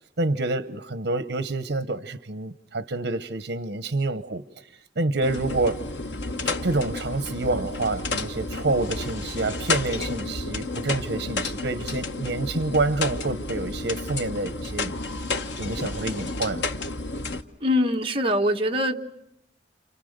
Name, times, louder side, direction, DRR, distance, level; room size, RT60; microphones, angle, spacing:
voice 1, 0.2-4.4 5.0-5.8 6.4-14.9 15.6-16.6, right 2 dB, 75° right, 1.0 m, -27 dB
sound 1, 5.2-17.4, left 3 dB, 85° left, 1.2 m, -31 dB
voice 2, 17.6-19.0, left 1 dB, 30° right, 1.4 m, -23 dB
29.5 x 28.5 x 6.7 m
head